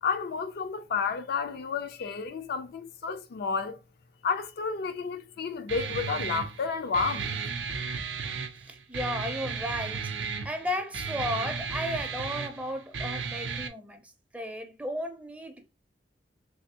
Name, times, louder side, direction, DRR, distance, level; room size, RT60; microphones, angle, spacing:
voice 1, 0.0-3.8 4.2-7.3, left 5 dB, 60° left, 0.4 m, -31 dB
Guitar, 5.7-13.7, right 5 dB, 75° right, 0.5 m, -34 dB
voice 2, 8.6-10.1 10.4-15.8, equal, 10° right, 0.5 m, -34 dB
3.4 x 2.6 x 2.8 m
head